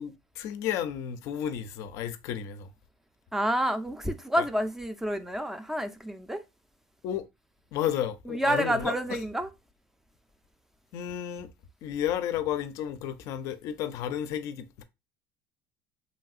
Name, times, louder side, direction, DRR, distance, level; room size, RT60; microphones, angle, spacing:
voice 1, 0.0-2.7 4.4-4.5 7.0-7.3 7.7-9.2 10.9-11.5 11.8-14.8, left 10 dB, 65° left, 0.4 m, -32 dB
voice 2, 3.3-6.4 8.3-9.5, equal, 5° right, 0.4 m, -29 dB
3.1 x 2.7 x 2.4 m
supercardioid pair, 110°, 6 cm